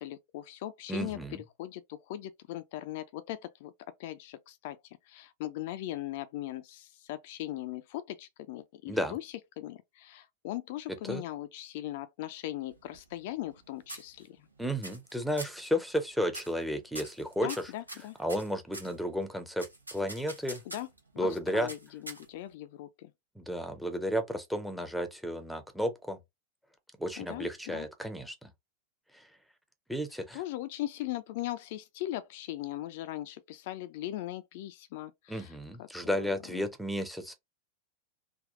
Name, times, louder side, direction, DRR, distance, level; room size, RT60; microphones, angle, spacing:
voice 1, 0.0-3.7 4.0-4.8 5.1-14.5 17.4-18.2 20.7-20.9 21.1-23.1 27.2-27.9 30.3-36.7, left 14 dB, 50° left, 0.4 m, -39 dB
voice 2, 0.9-1.4 8.9-9.2 11.1-11.2 14.6-17.7 18.2-20.6 21.2-21.7 23.4-26.2 27.0-28.5 29.1-29.2 29.9-30.4 35.3-37.3, equal, ahead, 0.7 m, -33 dB
sound 1, 12.7-13.6 13.9-14.5 14.8-15.1 15.4-15.7 16.3-16.6 16.9-18.9 19.6-21.0 21.7-22.5, right 1 dB, 85° right, 0.7 m, -44 dB
3.4 x 2.2 x 2.5 m
figure-of-eight pair, 90°, 0 cm